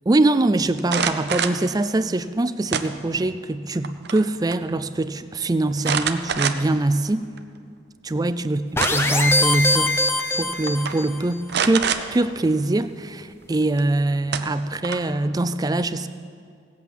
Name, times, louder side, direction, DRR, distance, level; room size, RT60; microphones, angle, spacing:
voice 1, 0.1-7.2 8.0-10.0 10.3-16.1, right 2 dB, 20° right, 13 dB, 0.4 m, -23 dB
sound 1, 0.8-1.6 2.7-3.3 3.7-4.2 4.5-4.6 5.8-6.8 7.4-7.5 8.5-9.2 10.2-10.4 10.7-10.9 11.5-12.0 13.8-13.9 14.3-15.2, right 7 dB, 50° right, 0.6 m, -25 dB
sound 2, 8.8-11.2, left 2 dB, 10° left, 0.7 m, -22 dB
17.5 x 8.4 x 7.2 m, 2.3 s
head